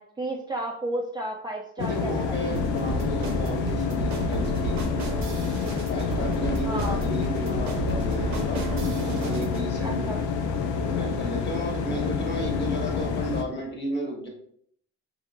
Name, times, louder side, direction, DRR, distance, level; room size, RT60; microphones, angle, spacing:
voice 1, 0.0-2.5 6.6-7.0 9.8-10.2, right 1 dB, 15° right, -2 dB, 0.5 m, -32 dB
sound 1, 1.8-13.4, left 6 dB, 75° left, 0.5 m, -28 dB
voice 2, 1.8-5.2 5.9-8.6 9.0-10.1 10.8-14.3, equal, 35° left, -1 dB, 1.4 m, -33 dB
sound 2, 2.5-9.7, right 2 dB, 65° right, 0.7 m, -32 dB
4.1 x 2.8 x 2.5 m, 0.64 s
cardioid pair, 90°, 30 cm